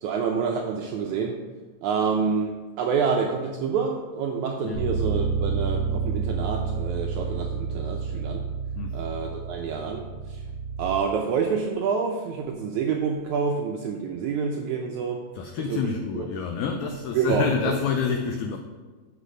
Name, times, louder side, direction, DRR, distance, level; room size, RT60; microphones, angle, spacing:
voice 1, 0.0-1.4 1.8-8.5 8.9-10.4 10.8-15.2 15.6-16.3 17.1-17.8, right 6 dB, 85° right, 2 dB, 1.7 m, -27 dB
Bass guitar, 4.7-11.0, right 5 dB, 50° left, 3.5 m, -29 dB
voice 2, 15.3-18.6, left 6 dB, 85° left, 5 dB, 1.7 m, -28 dB
8.2 x 6.1 x 5.4 m, 1.3 s
omnidirectional pair, 4.1 m